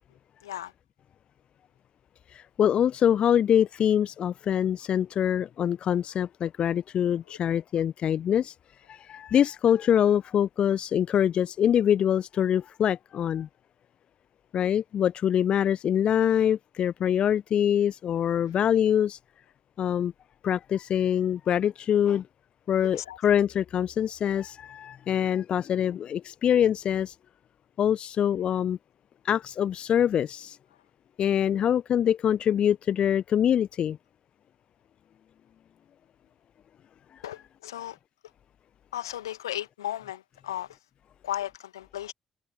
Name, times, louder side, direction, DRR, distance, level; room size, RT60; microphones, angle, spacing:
voice 1, 0.4-0.7 7.3-7.4 22.8-23.2 37.2-38.0 38.9-40.7 41.2-42.1, left 12 dB, 75° left, 2.0 m, -35 dB
voice 2, 2.3-8.5 8.9-13.5 14.5-19.2 19.8-20.1 20.4-22.3 22.7-27.1 27.8-28.8 29.2-30.6 31.2-34.0, left 9 dB, 50° left, 0.9 m, -24 dB
figure-of-eight pair, 40°, 2 cm